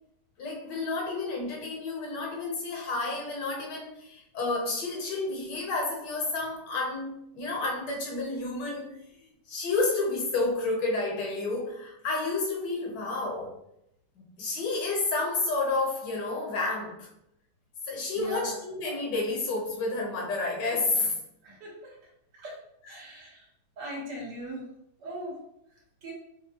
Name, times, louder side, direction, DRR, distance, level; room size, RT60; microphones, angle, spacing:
voice 1, 0.4-9.0 9.5-13.6 14.2-17.1 17.9-21.2 22.8-22.9, left 3 dB, 75° left, -1 dB, 1.6 m, -30 dB
voice 2, 18.2-18.6 21.4-22.0 22.3-22.6 22.9-23.5 23.8-24.7 25.0-25.4 26.0-26.1, right 1 dB, 75° right, -3 dB, 1.8 m, -39 dB
5.6 x 2.3 x 2.9 m, 0.79 s
omnidirectional pair, 1.9 m